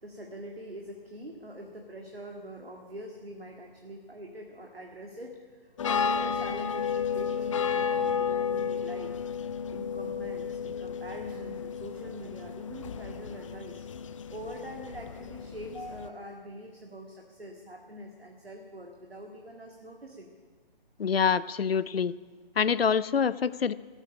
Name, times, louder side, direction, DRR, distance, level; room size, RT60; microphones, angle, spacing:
voice 1, 0.0-9.2 9.7-13.8 14.3-20.3, equal, 90° right, 2 dB, 2.0 m, -44 dB
sound 1, 5.8-16.1, left 6 dB, 35° left, 0.6 m, -32 dB
voice 2, 21.0-22.1 22.6-23.7, left 6 dB, 80° left, 18 dB, 0.6 m, -26 dB
16.5 x 9.0 x 9.7 m, 1.5 s
figure-of-eight pair, 145°, 29 cm